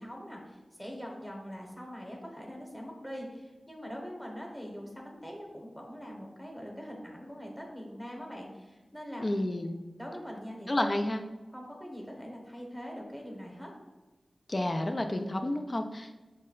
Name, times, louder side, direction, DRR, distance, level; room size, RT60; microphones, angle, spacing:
voice 1, 0.0-9.3 10.0-10.7 11.5-13.7, equal, ahead, 0 dB, 1.0 m, -43 dB
voice 2, 9.2-9.7 10.7-11.2 14.5-16.1, left 1 dB, 40° left, 5 dB, 0.4 m, -30 dB
5.2 x 2.2 x 3.8 m, 1.2 s
cardioid pair, 45°, 0 cm